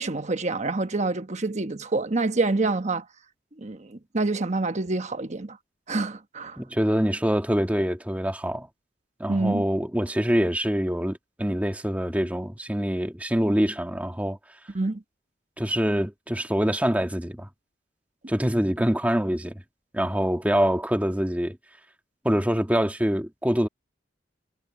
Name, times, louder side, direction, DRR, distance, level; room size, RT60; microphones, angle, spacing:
voice 1, 0.0-3.0 3.6-5.6 5.9-6.6 9.3-9.6 14.7-15.0, right 3 dB, 40° right, 1.1 m, -27 dB
voice 2, 6.6-8.7 9.2-14.4 15.6-17.5 18.3-19.6 19.9-21.6 22.2-23.7, equal, 10° right, 1.7 m, -25 dB
head